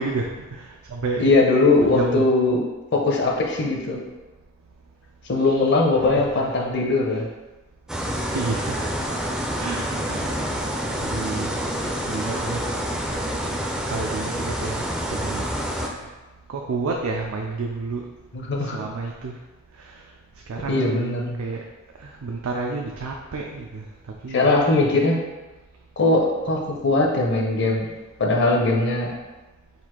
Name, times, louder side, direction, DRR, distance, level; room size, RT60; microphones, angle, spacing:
voice 1, 0.0-1.3 1.8-2.3 5.4-5.6 6.0-6.1 8.3-8.8 9.6-10.7 11.0-12.6 13.9-15.5 16.5-18.1 18.6-19.3 19.8-20.0 20.5-20.9 21.4-21.6 22.0-23.9 24.2-24.8, right 3 dB, 90° right, 1 dB, 0.4 m, -30 dB
voice 2, 1.2-2.6 2.9-4.0 5.3-7.2 18.3-18.8 20.7-21.4 24.3-25.2 26.0-27.9 28.2-29.1, left 2 dB, 55° left, -1 dB, 0.8 m, -20 dB
sound 1, 7.9-15.9, equal, 5° right, 0.4 m, -27 dB
4.1 x 2.5 x 4.4 m, 1.2 s
head